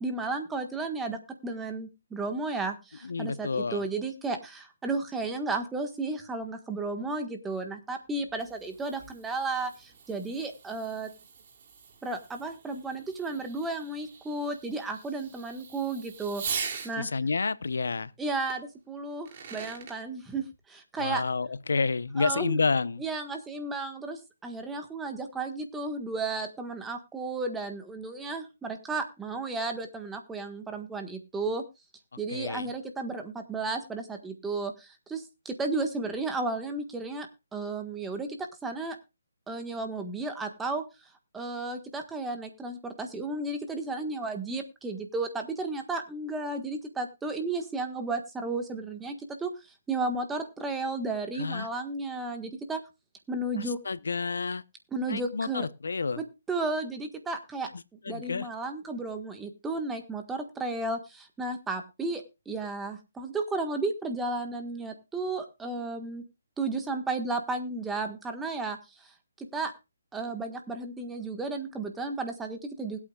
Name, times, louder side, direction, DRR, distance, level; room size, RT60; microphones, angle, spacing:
voice 1, 0.0-11.1 12.0-16.4 16.8-17.1 18.2-21.2 22.2-22.6 23.0-31.6 32.2-37.3 37.5-38.3 38.6-39.0 39.5-40.8 41.3-52.8 53.3-53.8 54.9-55.7 56.2-57.7 58.1-66.2 66.6-69.7 70.1-73.0, right 3 dB, 10° right, 1.5 m, -33 dB
voice 2, 3.0-3.9 17.0-18.1 21.0-23.0 32.3-32.7 51.4-51.7 53.6-54.6 55.1-56.2 58.0-58.5, left 4 dB, 75° left, 0.8 m, -29 dB
Fireworks, 8.1-16.9 18.5-18.6 19.1-20.0, right 6 dB, 40° right, 2.7 m, -42 dB
20.0 x 8.5 x 2.4 m
hypercardioid pair, 155°, 0 cm